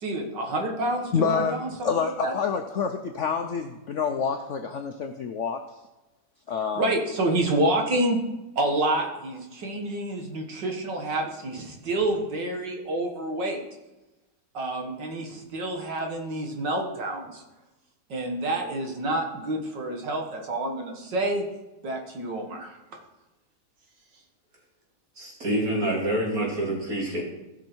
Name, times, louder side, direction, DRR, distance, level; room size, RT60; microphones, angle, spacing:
voice 1, 0.0-1.9 2.2-2.3 6.8-8.2 8.6-13.6 14.5-17.4 18.1-21.5 21.8-23.0, right 1 dB, 75° right, 2 dB, 2.1 m, -28 dB
voice 2, 1.1-1.6 1.8-5.6 6.5-6.8, left 6 dB, 65° left, 6 dB, 0.7 m, -27 dB
voice 3, 25.2-27.2, right 1 dB, 50° right, -3 dB, 3.2 m, -27 dB
15.5 x 5.9 x 4.5 m, 1.0 s
omnidirectional pair, 1.9 m